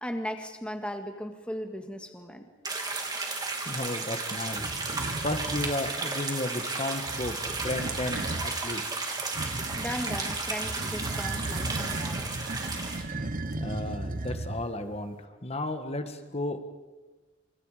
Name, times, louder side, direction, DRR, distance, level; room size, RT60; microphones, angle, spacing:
voice 1, 0.0-2.5 9.5-12.4, equal, 5° left, 5 dB, 1.9 m, -37 dB
sound 1, 2.6-13.0, right 3 dB, 20° right, 2.8 m, -33 dB
voice 2, 3.6-4.6 5.2-7.4 7.6-8.9 13.6-16.6, left 1 dB, 30° left, 8 dB, 1.7 m, -33 dB
sound 2, 4.5-5.8 6.9-8.6 9.3-14.8, right 2 dB, 45° right, 1.1 m, -36 dB
29.5 x 26.5 x 5.1 m, 1.3 s
head